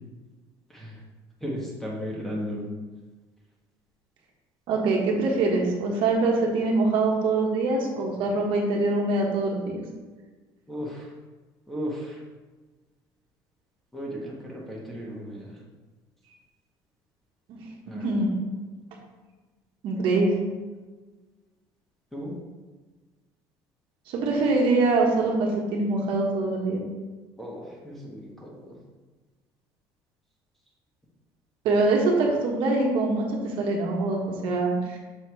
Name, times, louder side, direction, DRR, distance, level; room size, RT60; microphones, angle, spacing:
voice 1, 0.7-1.0 1.4-2.7 10.7-11.1 11.7-12.2 13.9-15.6 17.9-18.2 22.1-22.4 27.4-28.8, equal, 5° left, -4 dB, 1.3 m, -35 dB
voice 2, 4.7-9.8 17.5-17.6 17.9-18.4 19.8-20.3 24.1-26.8 31.6-35.0, right 3 dB, 60° right, -1 dB, 1.3 m, -24 dB
6.3 x 4.4 x 4.5 m, 1.3 s
cardioid pair, 160°, 10 cm